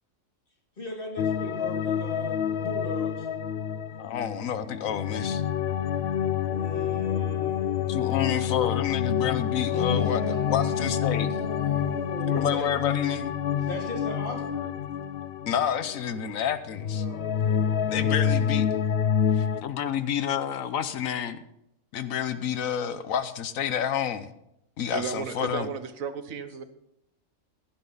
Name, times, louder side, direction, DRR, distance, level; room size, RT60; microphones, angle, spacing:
voice 1, 0.8-3.3 6.4-8.6 9.7-12.7 13.6-14.7 16.9-18.5, left 1 dB, 40° left, 0 dB, 2.8 m, -37 dB
sound 1, 1.2-16.4 16.7-19.6, left 8 dB, 60° left, 0.8 m, -28 dB
voice 2, 4.0-5.4 7.9-10.2 10.5-11.3 12.4-13.3 15.5-17.0 17.9-18.7 19.3-21.4 21.9-24.3 24.8-25.7, left 8 dB, 85° left, 12 dB, 1.3 m, -29 dB
voice 3, 24.9-26.6, right 6 dB, 85° right, 10 dB, 1.5 m, -34 dB
16.5 x 11.5 x 4.0 m, 0.81 s
omnidirectional pair, 1.4 m